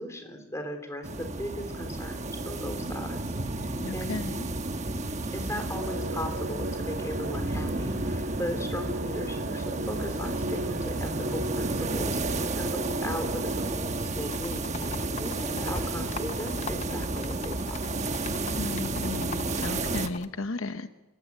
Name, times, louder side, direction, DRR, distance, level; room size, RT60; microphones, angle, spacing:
voice 1, 0.0-4.2 5.3-18.0, left 1 dB, 15° left, 6 dB, 3.5 m, -38 dB
sound 1, 1.0-20.1, right 2 dB, 35° right, 1.1 m, -32 dB
voice 2, 3.8-4.5 18.6-20.9, left 3 dB, 70° left, 10 dB, 0.9 m, -35 dB
sound 2, 5.7-13.7, right 2 dB, 50° right, 1.5 m, -36 dB
sound 3, 14.2-20.3, left 5 dB, 30° left, 0.7 m, -40 dB
28.5 x 16.0 x 9.6 m, 1.1 s
head